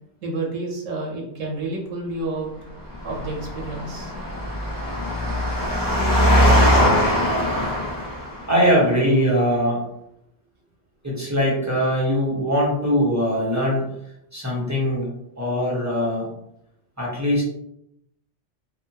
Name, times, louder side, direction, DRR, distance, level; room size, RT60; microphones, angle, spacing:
voice 1, 0.2-2.5 3.0-4.1, right 2 dB, 85° right, 0 dB, 1.1 m, -29 dB
Engine, 2.9-8.6, equal, 35° left, 0.3 m, -21 dB
voice 2, 8.5-9.8 11.0-13.9 14.3-15.1 15.4-16.3 17.0-17.4, equal, 15° right, -5 dB, 0.6 m, -21 dB
2.5 x 2.5 x 2.7 m, 0.78 s
omnidirectional pair, 1.3 m